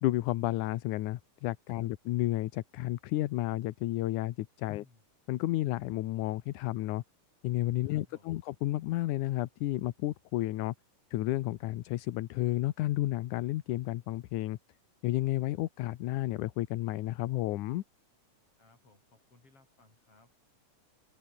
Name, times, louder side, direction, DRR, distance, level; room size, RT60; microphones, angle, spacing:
voice 1, 0.0-4.8 5.3-7.0 7.4-10.7 11.1-14.6 15.0-17.8, left 16 dB, 75° left, 2.3 m, -32 dB
voice 2, 4.7-5.0 7.8-8.4 18.6-20.4, left 3 dB, 45° left, 8.5 m, -63 dB
omnidirectional pair, 3.8 m